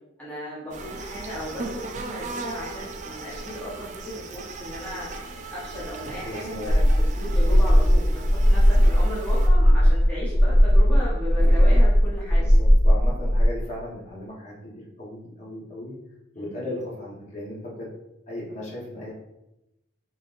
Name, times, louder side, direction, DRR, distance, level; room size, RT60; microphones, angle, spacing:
voice 1, 0.2-3.9 4.1-5.1 5.5-12.5, left 1 dB, 10° left, -9 dB, 0.9 m, -36 dB
sound 1, 0.7-9.5, right 3 dB, 40° right, 0.4 m, -37 dB
voice 2, 6.2-6.7 12.4-15.9 16.3-17.9 18.3-19.1, left 1 dB, 35° left, -5 dB, 1.1 m, -36 dB
sound 2, 6.7-13.4, equal, 85° left, 0.9 m, -18 dB
sound 3, 6.8-11.8, equal, 75° right, 0.7 m, -45 dB
4.3 x 3.7 x 2.5 m, 0.88 s
head